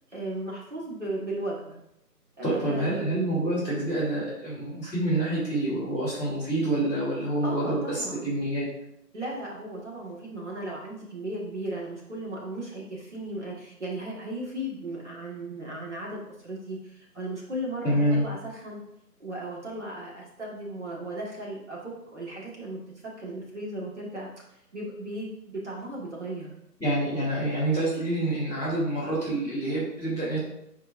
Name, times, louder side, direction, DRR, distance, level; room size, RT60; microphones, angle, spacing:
voice 1, 0.1-1.8 2.4-2.9 7.4-8.4 9.1-18.8 19.2-22.8 23.2-24.3 24.7-26.5, right 1 dB, 45° right, -4 dB, 1.7 m, -36 dB
voice 2, 2.4-8.7 17.8-18.3 26.8-30.4, right 1 dB, 5° right, -21 dB, 1.9 m, -27 dB
10.0 x 4.5 x 2.5 m, 0.79 s
figure-of-eight pair, 170°, 49 cm